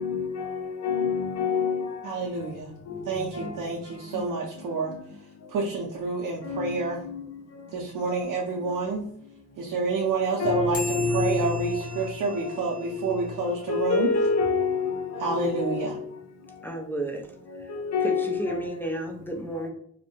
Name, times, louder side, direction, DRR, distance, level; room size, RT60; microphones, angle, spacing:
voice 1, 0.0-2.5 2.9-3.7 4.1-4.3 4.9-5.0 6.4-7.2 7.5-7.6 10.4-16.1 17.5-18.7, left 4 dB, 50° left, 0.6 m, -28 dB
voice 2, 2.0-2.7 3.1-4.9 5.5-7.0 7.7-9.1 9.6-10.8 11.1-14.1 15.2-16.0, right 4 dB, 75° right, 0.6 m, -28 dB
sound 1, 10.7-13.6, equal, 15° right, 0.8 m, -40 dB
voice 3, 16.6-17.3 17.6-17.7 18.0-19.7, right 1 dB, 5° left, 0.4 m, -32 dB
2.6 x 2.1 x 2.7 m
cardioid pair, 85°, 33 cm